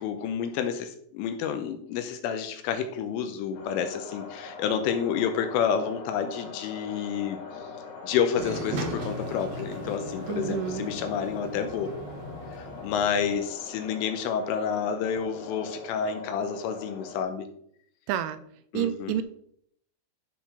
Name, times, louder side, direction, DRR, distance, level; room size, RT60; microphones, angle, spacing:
voice 1, 0.0-7.4 8.0-11.9 12.5-17.5 18.7-19.2, left 7 dB, 80° left, 7 dB, 3.2 m, -29 dB
sound 1, 3.5-17.2, left 4 dB, 60° left, 3.1 m, -42 dB
sound 2, 8.4-13.3, right 1 dB, 65° right, 2.4 m, -37 dB
voice 2, 10.3-10.9 18.1-18.4 18.7-19.2, right 11 dB, 85° right, 12 dB, 2.8 m, -29 dB
12.0 x 4.5 x 5.6 m, 0.67 s
omnidirectional pair, 5.9 m